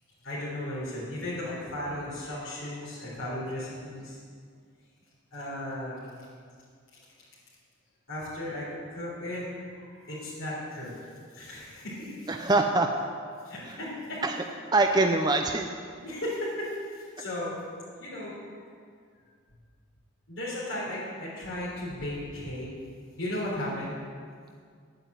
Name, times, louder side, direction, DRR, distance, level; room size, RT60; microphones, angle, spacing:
voice 1, 0.2-4.2 5.3-6.1 8.1-11.0 11.3-12.3 13.4-14.2 16.0-17.6 18.0-18.4 20.3-22.7 23.2-24.0, left 1 dB, 70° left, -8 dB, 3.8 m, -35 dB
voice 2, 12.3-12.9 13.7-13.8 14.2-14.4 14.7-15.7, right 2 dB, 20° right, 4 dB, 0.5 m, -24 dB
9.4 x 9.0 x 8.2 m, 2.1 s
head